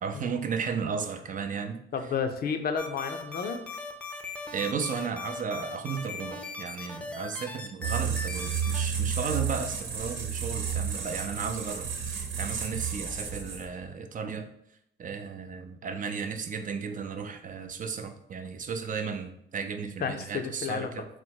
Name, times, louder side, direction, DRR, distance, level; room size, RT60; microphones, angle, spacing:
voice 1, 0.0-1.8 4.5-14.5 15.0-21.0, right 6 dB, 40° right, 7 dB, 0.5 m, -34 dB
voice 2, 1.9-3.6 20.0-21.0, left 6 dB, 50° left, 6 dB, 0.5 m, -31 dB
sound 1, 2.8-8.8, left 3 dB, 5° left, 0.6 m, -39 dB
sound 2, 7.8-13.8, right 7 dB, 75° right, 0.9 m, -32 dB
4.1 x 2.1 x 4.5 m, 0.74 s
cardioid pair, 90°, 20 cm